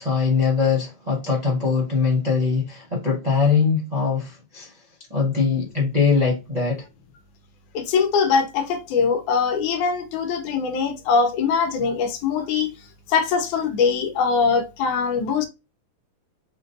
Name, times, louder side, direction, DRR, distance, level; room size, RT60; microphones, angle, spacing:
voice 1, 0.0-4.7 5.1-6.8, left 5 dB, 65° right, 0.4 m, -22 dB
voice 2, 7.7-12.7 13.1-15.5, left 5 dB, 85° left, 2.1 m, -22 dB
5.7 x 2.5 x 2.6 m
omnidirectional pair, 3.5 m